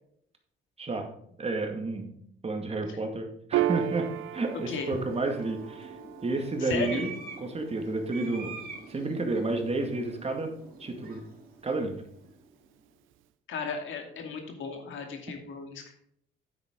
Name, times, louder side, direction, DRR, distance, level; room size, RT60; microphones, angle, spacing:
voice 1, 1.4-2.1 2.4-4.1 4.3-5.9 6.2-7.1 7.4-8.5 8.9-10.5 10.8-11.2 11.6-12.0, right 2 dB, 30° right, 4 dB, 2.2 m, -31 dB
Piano, 3.5-10.4, right 14 dB, 85° right, 0.5 m, -36 dB
sound 1, 4.2-12.6, right 4 dB, 45° right, 3.3 m, -46 dB
voice 2, 6.6-7.0 13.5-15.9, left 5 dB, 75° left, 4 dB, 2.4 m, -35 dB
9.7 x 8.1 x 3.9 m, 0.70 s
cardioid pair, 90°, 20 cm